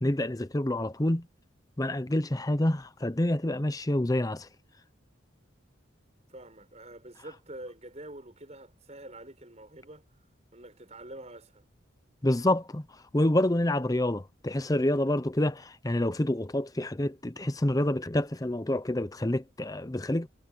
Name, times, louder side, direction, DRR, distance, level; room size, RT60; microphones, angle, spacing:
voice 1, 0.0-1.3 1.8-4.5 12.2-12.8 13.1-20.3, left 1 dB, 20° left, 0.7 m, -27 dB
voice 2, 6.3-10.0 10.5-11.7, right 1 dB, 35° right, 7.0 m, -46 dB
head